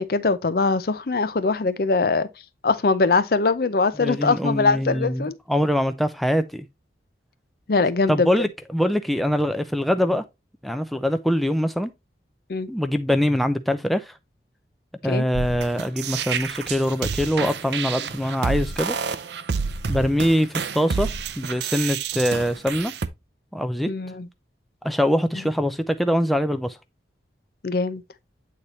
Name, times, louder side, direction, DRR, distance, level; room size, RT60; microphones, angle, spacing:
voice 1, 0.0-2.3 2.6-5.4 7.7-8.3 12.5-12.7 15.1-15.3 23.9-24.3 27.6-28.0, left 3 dB, 55° left, 0.6 m, -22 dB
voice 2, 4.0-6.7 8.1-10.2 10.6-11.9 12.7-14.1 15.0-19.0 19.9-21.1 21.4-22.9 23.5-23.9 24.8-26.8, equal, ahead, 0.5 m, -23 dB
sound 1, 15.3-23.1, right 6 dB, 75° right, 0.6 m, -29 dB
8.5 x 4.1 x 3.0 m
head